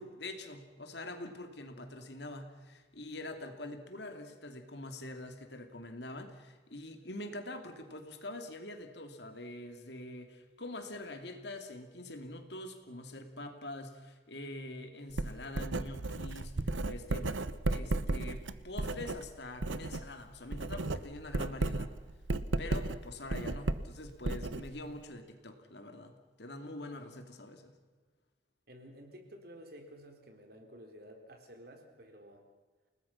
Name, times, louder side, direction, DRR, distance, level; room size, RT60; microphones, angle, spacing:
voice 1, 0.0-17.3 17.7-21.9 22.6-27.8, left 1 dB, 60° left, 6 dB, 2.7 m, -45 dB
Writing, 15.1-20.1 20.4-25.0, right 2 dB, 85° right, 0.9 m, -35 dB
voice 2, 28.7-32.5, equal, 55° right, 4 dB, 3.8 m, -52 dB
30.0 x 19.0 x 5.9 m, 1.3 s
head